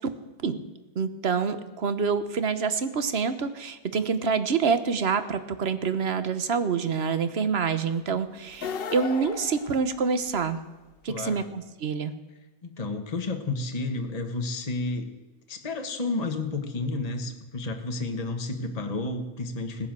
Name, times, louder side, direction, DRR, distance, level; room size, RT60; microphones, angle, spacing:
voice 1, 0.9-10.6 11.0-12.1, right 5 dB, 45° right, 11 dB, 1.2 m, -27 dB
sound 1, 8.5-10.5, left 7 dB, 50° left, 0.7 m, -36 dB
voice 2, 11.1-11.4 12.6-15.1 15.5-19.9, left 3 dB, 25° left, 5 dB, 1.4 m, -31 dB
17.0 x 10.5 x 7.6 m, 1.1 s
omnidirectional pair, 1.7 m